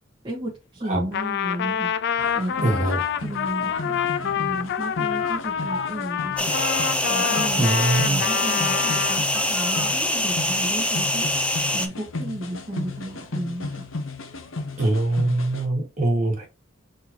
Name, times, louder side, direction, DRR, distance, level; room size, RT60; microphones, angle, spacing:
voice 1, 0.2-1.9 2.3-2.8 3.2-6.5 7.1-7.6 8.0-11.3 11.7-13.8, right 1 dB, 25° right, 1.2 m, -33 dB
Trumpet, 1.1-9.2, left 8 dB, 60° left, 0.4 m, -27 dB
sound 1, 2.2-15.7, left 3 dB, 80° left, 0.8 m, -34 dB
voice 2, 2.6-3.0 7.6-8.2 14.8-16.5, right 2 dB, 40° right, 1.7 m, -23 dB
sound 2, 6.4-11.9, left 1 dB, 5° left, 0.5 m, -24 dB
4.3 x 3.7 x 2.8 m
head